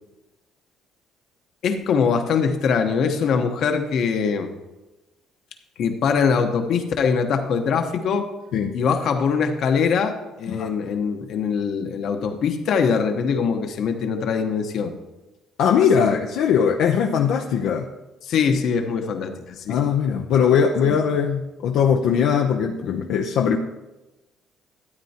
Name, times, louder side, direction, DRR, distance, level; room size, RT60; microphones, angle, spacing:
voice 1, 1.6-4.5 5.8-8.3 8.7-14.9 16.0-16.2 18.2-19.8 20.8-21.0, left 6 dB, 60° left, 6 dB, 1.1 m, -22 dB
voice 2, 15.6-17.9 19.7-23.6, left 7 dB, 80° left, 1 dB, 0.7 m, -20 dB
13.0 x 9.1 x 2.9 m, 1.0 s
cardioid pair, 135°, 0 cm